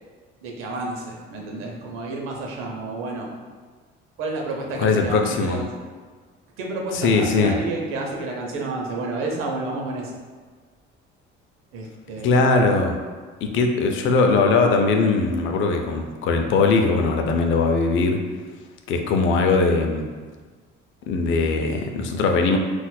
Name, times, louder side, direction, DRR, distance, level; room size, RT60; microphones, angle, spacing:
voice 1, 0.4-3.3 4.2-5.7 6.6-10.1 11.7-12.5, right 2 dB, 85° right, 0 dB, 0.7 m, -30 dB
voice 2, 4.8-5.6 7.0-7.5 12.2-13.0 13.4-18.2 18.9-20.0 21.1-22.6, left 3 dB, 70° left, 4 dB, 0.5 m, -20 dB
4.1 x 2.4 x 2.2 m, 1.5 s
cardioid pair, 130°, 21 cm